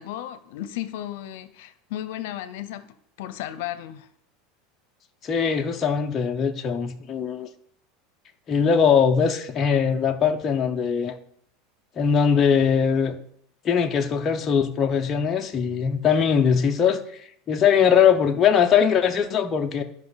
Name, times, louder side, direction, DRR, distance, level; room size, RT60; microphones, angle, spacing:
voice 1, 0.0-2.9 3.2-4.1, left 12 dB, 65° left, 13 dB, 0.7 m, -34 dB
voice 2, 5.2-7.5 8.5-11.1 12.0-13.2 13.6-17.0 17.5-19.8, left 7 dB, 20° left, 3 dB, 0.6 m, -21 dB
13.0 x 5.5 x 4.0 m, 0.68 s
supercardioid pair, 170°, 0 cm